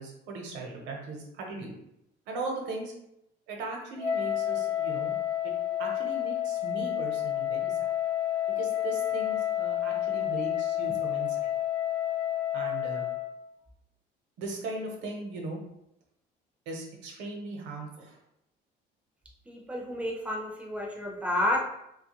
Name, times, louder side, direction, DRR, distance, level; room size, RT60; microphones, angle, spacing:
voice 1, 0.0-1.7 2.3-2.9 3.5-5.2 5.8-7.9 8.6-11.5 12.5-13.1 14.4-15.6 16.7-18.2, right 2 dB, 80° right, 1 dB, 0.8 m, -38 dB
Wind instrument woodwind instrument, 4.0-13.4, left 11 dB, 75° left, 0.8 m, -30 dB
voice 2, 19.5-21.6, left 1 dB, 5° right, 0 dB, 0.4 m, -30 dB
2.8 x 2.3 x 2.9 m, 0.81 s
cardioid pair, 175°, 18 cm